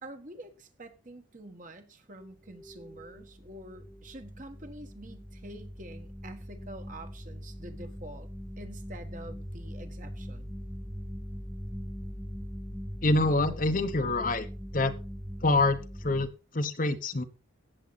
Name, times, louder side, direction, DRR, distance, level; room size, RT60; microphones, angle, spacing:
voice 1, 0.0-8.3 8.6-10.5, right 1 dB, 40° right, 1.5 m, -47 dB
sound 1, 2.2-16.3, equal, ahead, 0.6 m, -41 dB
voice 2, 13.0-14.5 14.7-14.9 15.4-17.2, left 2 dB, 40° left, 1.0 m, -26 dB
16.5 x 7.6 x 4.1 m
head